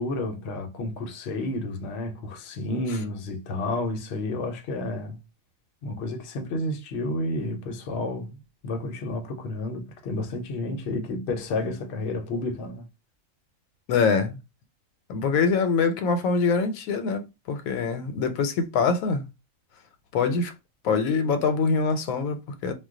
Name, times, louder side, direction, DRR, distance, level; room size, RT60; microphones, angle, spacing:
voice 1, 0.0-5.2 5.8-8.3 8.6-12.8, left 2 dB, 60° left, 0.8 m, -31 dB
voice 2, 13.9-14.4 15.1-19.3 20.1-20.5 20.8-22.7, left 5 dB, 90° left, 1.0 m, -24 dB
2.3 x 2.2 x 3.6 m
omnidirectional pair, 1.4 m